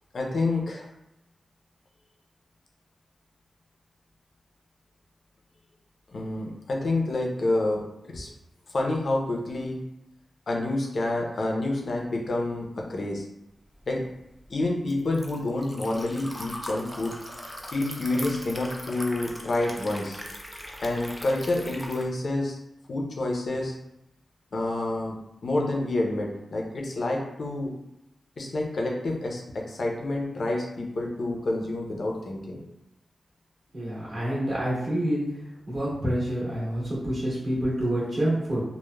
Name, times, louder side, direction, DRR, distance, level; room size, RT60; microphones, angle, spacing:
voice 1, 0.1-0.9 6.1-8.3 8.7-9.8 10.5-13.3 13.9-14.1 14.5-17.2 17.7-20.2 20.8-22.6 22.9-23.7 24.5-25.2 25.4-27.7 28.4-32.7, left 2 dB, 60° left, 0 dB, 0.5 m, -28 dB
Liquid, 13.8-22.1, equal, ahead, 0.4 m, -40 dB
voice 2, 33.7-38.6, right 1 dB, 50° right, -8 dB, 1.3 m, -28 dB
3.1 x 2.0 x 2.2 m, 0.86 s
wide cardioid pair, 100°, 0 cm